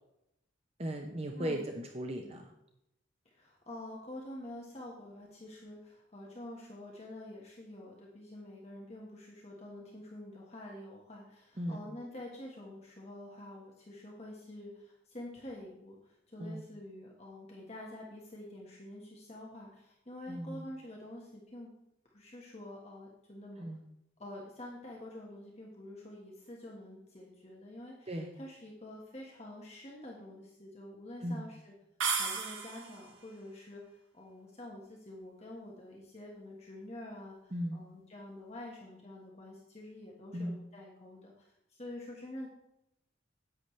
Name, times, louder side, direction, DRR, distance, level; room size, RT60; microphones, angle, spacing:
voice 1, 0.8-2.5 11.6-11.8 16.4-16.6 20.3-20.6 23.6-23.8 28.1-28.3 31.2-31.5 37.5-37.8 40.3-40.6, equal, 30° right, 4 dB, 0.7 m, -37 dB
voice 2, 1.4-1.7 3.2-21.7 22.1-23.6 24.2-31.7 32.1-33.8 34.1-42.5, left 1 dB, 35° left, -2 dB, 1.5 m, -47 dB
sound 1, 32.0-33.1, right 5 dB, 80° right, 1.6 m, -33 dB
10.5 x 8.8 x 3.3 m, 0.82 s
head